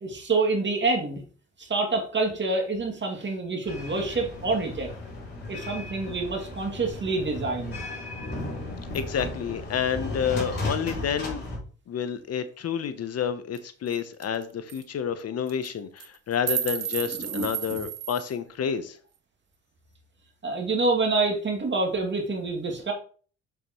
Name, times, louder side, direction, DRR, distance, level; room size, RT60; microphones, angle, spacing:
voice 1, 0.0-1.2 1.6-4.9 5.5-7.9 17.2-17.8 20.4-22.9, right 3 dB, 40° right, 2 dB, 2.3 m, -27 dB
sound 1, 3.6-11.6, left 2 dB, 35° left, 4.0 m, -35 dB
voice 2, 8.9-11.4 11.9-19.0, left 8 dB, 55° left, 11 dB, 0.9 m, -29 dB
sound 2, 13.5-13.6 13.9-14.0 14.2-14.4 14.7-14.8 15.5-15.7 16.0-18.3, right 9 dB, 55° right, 1.0 m, -32 dB
7.1 x 6.9 x 3.0 m, 0.41 s
cardioid pair, 90°, 30 cm